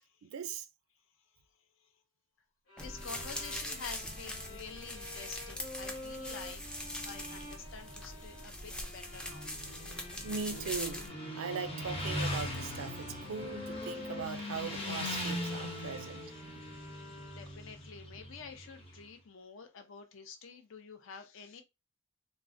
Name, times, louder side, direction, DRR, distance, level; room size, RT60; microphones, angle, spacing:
voice 1, 0.2-0.6 10.2-11.0 11.4-16.3, right 6 dB, 65° right, 0.4 m, -40 dB
sound 1, 2.7-17.8, left 2 dB, 80° left, 1.1 m, -49 dB
voice 2, 2.8-6.6 7.0-9.5 15.3-16.4 16.7-21.6, left 5 dB, 60° left, 0.5 m, -49 dB
sound 2, 2.8-11.1, left 1 dB, 5° left, 0.3 m, -42 dB
Motorcycle, 9.2-19.0, left 1 dB, 25° left, 0.7 m, -40 dB
3.5 x 2.0 x 2.5 m
head